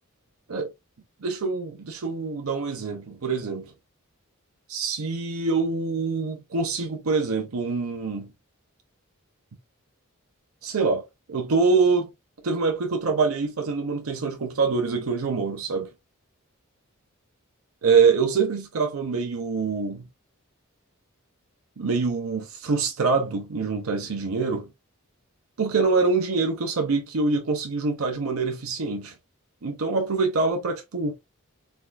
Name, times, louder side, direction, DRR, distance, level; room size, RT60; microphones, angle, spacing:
voice 1, 1.2-3.7 4.7-8.3 10.6-11.0 11.3-12.1 12.4-15.9 17.8-20.1 21.8-24.7 25.6-29.1 29.6-31.1, right 4 dB, 75° right, 0.7 m, -25 dB
4.5 x 2.3 x 2.2 m
head